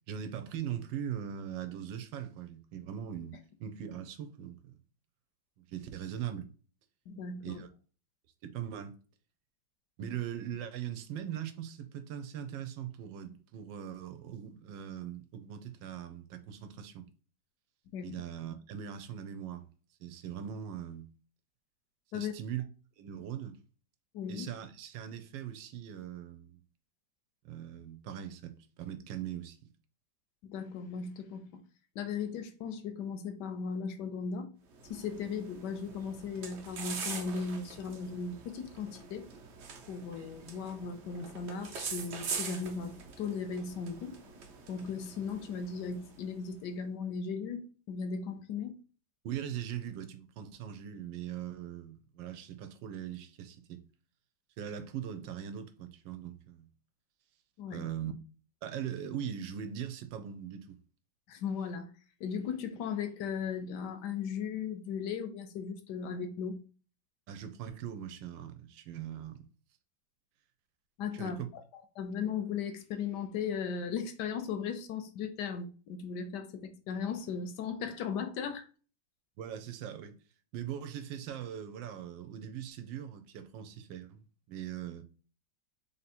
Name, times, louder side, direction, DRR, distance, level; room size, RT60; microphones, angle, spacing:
voice 1, 0.0-4.8 5.6-6.5 7.4-7.7 8.4-9.0 10.0-17.0 18.0-19.6 20.0-21.1 22.1-22.6 23.0-23.6 24.3-26.6 27.4-29.7 49.2-53.8 54.6-56.7 57.7-58.1 58.6-60.8 67.3-69.5 71.1-71.5 79.4-80.2 80.5-85.0, right 9 dB, 85° right, 1.3 m, -40 dB
voice 2, 7.1-7.6 10.0-10.1 17.9-18.2 22.1-22.3 24.1-24.5 30.4-31.5 32.0-34.5 34.9-39.3 39.9-44.1 44.7-48.7 57.6-57.8 61.3-61.9 62.2-66.6 71.0-71.4 71.7-78.6, left 6 dB, 75° left, 1.1 m, -37 dB
sound 1, 34.7-46.5, right 5 dB, 65° right, 0.7 m, -44 dB
3.5 x 2.8 x 4.2 m
omnidirectional pair, 2.0 m